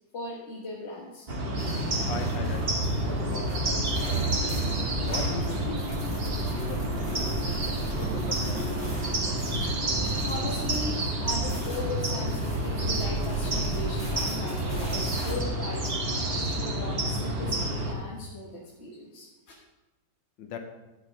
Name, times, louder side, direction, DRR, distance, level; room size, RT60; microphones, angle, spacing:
voice 1, 0.1-1.3 9.6-19.3, left 2 dB, 40° left, -3 dB, 1.3 m, -38 dB
sound 1, 1.3-17.9, right 1 dB, 35° right, 1.3 m, -29 dB
sound 2, 1.6-15.3, right 2 dB, 5° left, 2.3 m, -39 dB
voice 2, 2.1-2.7 3.0-3.8 5.0-6.0 6.5-7.3 8.0-8.7 20.4-20.6, left 5 dB, 70° left, 5 dB, 1.7 m, -39 dB
10.5 x 6.5 x 5.0 m, 1.1 s
omnidirectional pair, 2.1 m